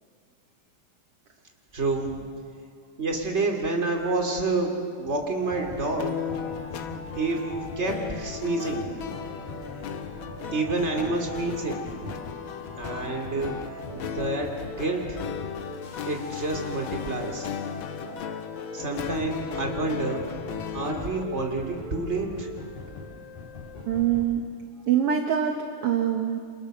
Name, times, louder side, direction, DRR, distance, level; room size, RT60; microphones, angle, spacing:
voice 1, 1.7-2.2 3.0-6.5 7.2-7.4 7.8-9.1 10.5-12.2 12.8-15.3 16.0-17.5 18.7-20.2 20.5-22.5 22.7-23.0, right 3 dB, 20° right, 2 dB, 2.9 m, -29 dB
sound 1, 5.4-24.3, left 2 dB, 90° left, 5.6 m, -40 dB
sound 2, 6.0-21.2, left 8 dB, 65° left, 1.2 m, -36 dB
voice 2, 23.9-24.4 24.9-26.4, right 9 dB, 55° right, 4 dB, 2.1 m, -24 dB
29.5 x 27.0 x 6.7 m, 2.2 s
omnidirectional pair, 3.6 m